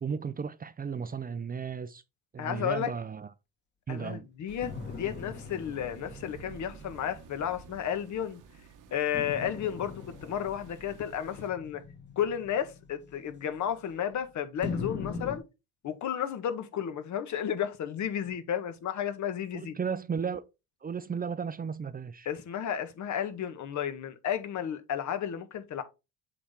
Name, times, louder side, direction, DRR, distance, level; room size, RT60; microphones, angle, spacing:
voice 1, 0.0-2.0 2.3-3.3 3.9-4.3 19.5-20.4 20.8-22.3, right 6 dB, 25° right, 0.6 m, -34 dB
voice 2, 2.4-2.9 3.9-8.4 8.9-11.8 12.2-15.4 15.8-19.8 22.2-25.8, left 9 dB, 60° left, 1.4 m, -33 dB
sound 1, 4.5-11.5, right 7 dB, 65° right, 1.2 m, -51 dB
sound 2, 4.6-8.3 9.1-14.1 14.6-15.4, left 4 dB, 30° left, 1.6 m, -42 dB
7.4 x 4.2 x 3.6 m
supercardioid pair, 75°, 33 cm